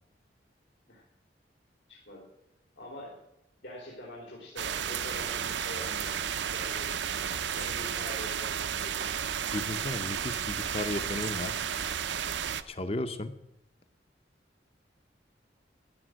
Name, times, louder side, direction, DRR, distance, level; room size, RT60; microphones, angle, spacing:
voice 1, 1.9-2.3 2.8-3.2 3.6-6.2 6.5-7.0 7.5-9.0, left 1 dB, 85° left, -4 dB, 3.6 m, -44 dB
sound 1, 4.6-12.6, right 8 dB, 75° right, 0.6 m, -33 dB
voice 2, 9.5-11.6 12.7-13.3, left 2 dB, 30° left, 11 dB, 0.6 m, -34 dB
14.0 x 10.0 x 6.3 m, 0.84 s
head